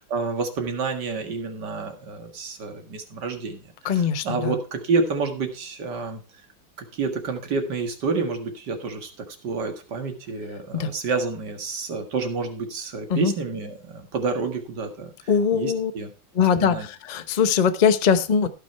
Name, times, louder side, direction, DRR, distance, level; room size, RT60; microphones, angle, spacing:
voice 1, 0.1-6.2 6.8-16.1 16.6-16.9, right 4 dB, 60° right, 5 dB, 2.4 m, -29 dB
voice 2, 3.8-4.5 10.7-10.9 13.1-13.3 15.3-15.9 16.3-18.5, left 7 dB, 85° left, 11 dB, 0.3 m, -21 dB
16.0 x 6.1 x 4.4 m, 0.34 s
omnidirectional pair, 2.1 m